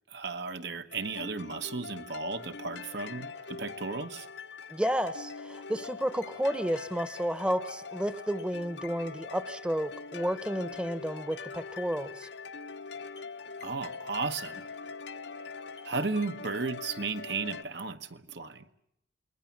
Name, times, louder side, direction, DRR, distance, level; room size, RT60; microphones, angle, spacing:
voice 1, 0.1-4.3 13.6-14.6 15.8-18.6, right 4 dB, 65° right, 8 dB, 1.2 m, -34 dB
sound 1, 0.9-17.6, left 4 dB, 70° left, 0.9 m, -43 dB
voice 2, 4.7-12.3, equal, 5° right, 13 dB, 0.9 m, -31 dB
28.5 x 21.0 x 7.4 m, 0.77 s
head